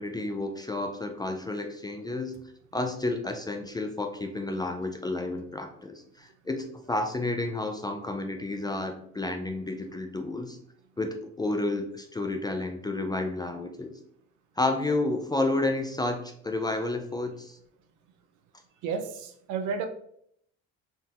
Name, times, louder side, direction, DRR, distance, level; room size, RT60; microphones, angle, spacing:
voice 1, 0.0-2.4 2.7-10.6 11.0-13.9 14.6-17.6, left 2 dB, 15° left, 5 dB, 0.3 m, -31 dB
voice 2, 18.8-19.9, right 6 dB, 65° right, 7 dB, 0.6 m, -32 dB
3.7 x 2.6 x 2.4 m, 0.69 s
supercardioid pair, 80°, 32 cm